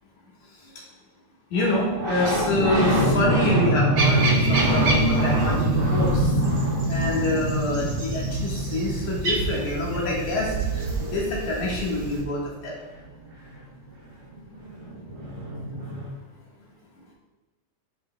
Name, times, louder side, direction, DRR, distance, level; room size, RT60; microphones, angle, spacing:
voice 1, 1.5-6.3 6.9-12.7, left 2 dB, 70° left, -4 dB, 2.9 m, -27 dB
sound 1, 1.5-12.0 14.0-14.1 14.3-16.1, right 1 dB, 30° right, 1.0 m, -25 dB
sound 2, 4.0-12.2, right 3 dB, 60° right, 1.4 m, -30 dB
9.6 x 5.0 x 2.2 m, 1.2 s
omnidirectional pair, 3.5 m